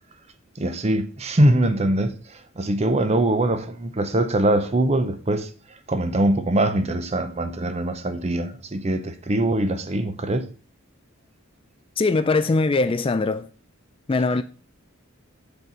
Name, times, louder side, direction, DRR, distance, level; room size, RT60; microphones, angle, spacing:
voice 1, 0.6-2.1 2.6-5.5 5.9-10.4, right 1 dB, 30° right, 0.7 m, -22 dB
voice 2, 12.0-13.5 14.1-14.4, left 3 dB, 25° left, 0.3 m, -21 dB
6.7 x 4.1 x 6.0 m
head